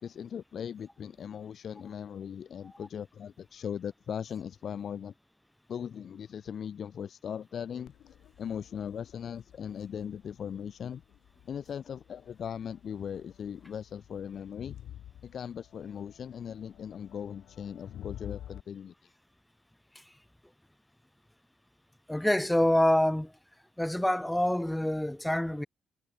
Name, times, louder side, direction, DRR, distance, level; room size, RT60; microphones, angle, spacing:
voice 1, 0.0-5.1 5.7-7.9 8.4-11.0 11.5-14.8 15.2-18.9, left 8 dB, 45° left, 4.7 m, -39 dB
Crowd, 7.9-18.6, left 11 dB, 70° left, 7.1 m, -50 dB
voice 2, 22.1-23.3 23.8-25.7, left 1 dB, 5° left, 0.9 m, -26 dB
cardioid pair, 145°, 0 cm